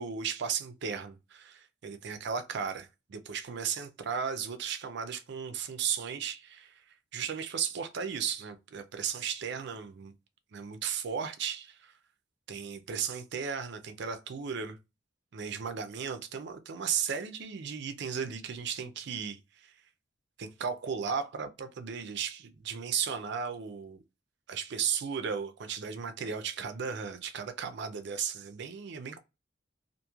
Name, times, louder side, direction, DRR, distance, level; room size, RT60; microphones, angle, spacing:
voice 1, 0.0-10.1 10.5-11.9 12.5-14.8 15.3-19.8 20.4-24.0 24.5-29.2, right 7 dB, 60° right, 0.5 m, -35 dB
3.0 x 2.5 x 2.3 m
head